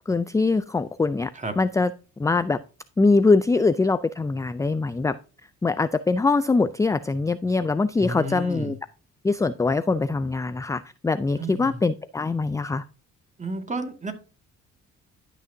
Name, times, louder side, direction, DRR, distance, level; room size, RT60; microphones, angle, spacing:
voice 1, 0.1-1.3 1.6-1.9 2.2-2.6 3.0-5.2 5.6-8.8 9.2-12.8, left 3 dB, 10° left, 0.3 m, -23 dB
voice 2, 8.0-8.7 11.4-11.8 13.4-14.1, right 2 dB, 25° right, 1.9 m, -32 dB
12.0 x 6.0 x 2.7 m
cardioid pair, 90°, 30 cm